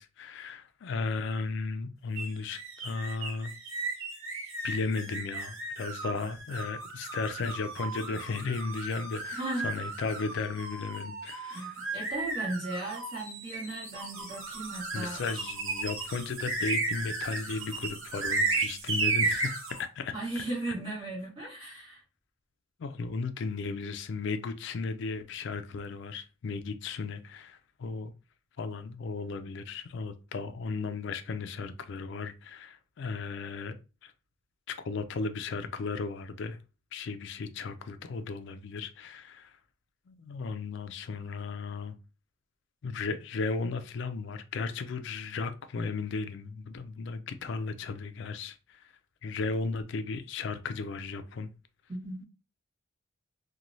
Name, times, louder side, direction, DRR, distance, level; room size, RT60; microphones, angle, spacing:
voice 1, 0.0-3.5 4.6-11.8 14.9-20.1 22.8-28.1 28.6-33.7 34.0-34.1 34.7-36.6 36.9-39.6 40.1-41.9 42.8-48.9 49.2-51.5, left 4 dB, 60° left, 0.3 m, -35 dB
sound 1, 2.2-19.8, right 3 dB, 75° right, 0.9 m, -34 dB
voice 2, 9.4-9.7 11.5-15.2 20.1-22.0 51.9-52.2, right 2 dB, 25° right, 1.5 m, -36 dB
3.0 x 2.2 x 2.5 m
head